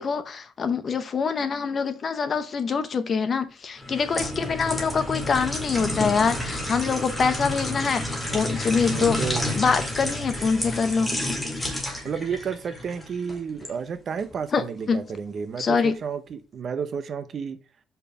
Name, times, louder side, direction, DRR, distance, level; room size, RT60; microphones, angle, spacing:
voice 1, 0.0-9.2 9.6-11.2 14.5-14.6 14.9-15.0 15.6-15.9, left 5 dB, 35° left, 0.8 m, -25 dB
sound 1, 3.8-13.7 14.2-14.4, left 1 dB, 5° left, 1.8 m, -30 dB
voice 2, 8.9-9.4 12.0-17.6, right 6 dB, 40° right, 0.7 m, -31 dB
5.3 x 4.4 x 5.6 m
cardioid pair, 150°, 0 cm